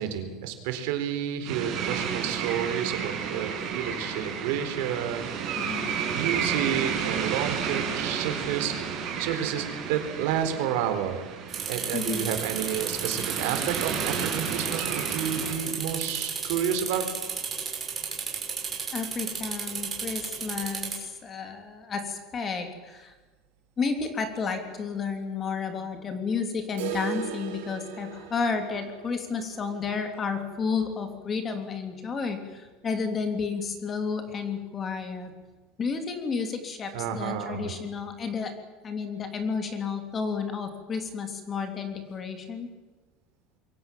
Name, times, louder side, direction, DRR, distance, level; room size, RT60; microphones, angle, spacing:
voice 1, 0.0-5.3 6.1-11.2 11.7-17.1 36.9-37.7, right 9 dB, 70° right, 7 dB, 4.2 m, -30 dB
Artificial Beach & Seagulls, 1.4-15.5, right 7 dB, 40° right, 6.7 m, -32 dB
voice 2, 5.5-5.9 11.9-12.3 18.9-23.1 23.8-35.3 35.8-38.5 38.8-42.7, left 5 dB, 20° left, 6 dB, 3.2 m, -31 dB
sound 1, 11.5-21.0, right 6 dB, 20° right, 6.1 m, -33 dB
sound 2, 26.8-32.6 32.9-33.0 33.3-33.4 33.9-34.0 34.9-35.0, right 11 dB, 90° right, 4.1 m, -40 dB
27.0 x 23.0 x 7.6 m, 1.3 s
cardioid pair, 170°, 0 cm